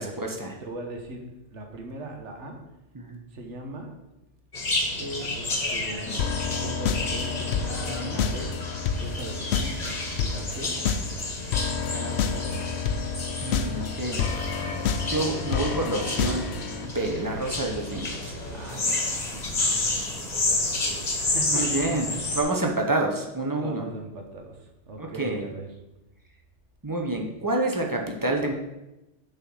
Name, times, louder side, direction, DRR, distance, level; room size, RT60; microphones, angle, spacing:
voice 1, 0.0-0.6 2.9-3.2 7.9-8.2 13.4-14.2 15.1-16.5 16.8-18.4 21.5-22.1 22.3-23.8 25.0-25.4 26.8-28.5, right 2 dB, 20° right, 1 dB, 0.8 m, -28 dB
voice 2, 0.6-2.6 3.3-4.0 5.0-6.3 6.6-7.5 8.0-8.6 8.9-10.8 11.7-12.9 18.5-22.3 23.6-25.7, right 2 dB, 75° right, 3 dB, 1.4 m, -39 dB
sound 1, 4.5-22.4, left 2 dB, 40° left, 1.2 m, -31 dB
sound 2, 6.2-16.9, left 6 dB, 70° left, 0.8 m, -29 dB
6.6 x 4.1 x 6.2 m, 0.97 s
omnidirectional pair, 1.2 m